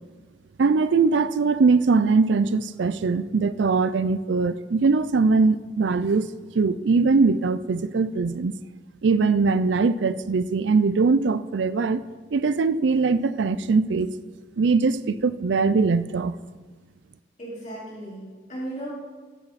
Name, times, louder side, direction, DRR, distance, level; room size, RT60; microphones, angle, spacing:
voice 1, 0.6-6.3 6.5-8.5 9.0-12.0 12.3-14.1 14.6-16.4, right 4 dB, 75° right, 15 dB, 0.4 m, -21 dB
voice 2, 17.4-18.9, right 1 dB, 40° left, -7 dB, 4.4 m, -36 dB
14.0 x 9.0 x 4.1 m, 1.4 s
head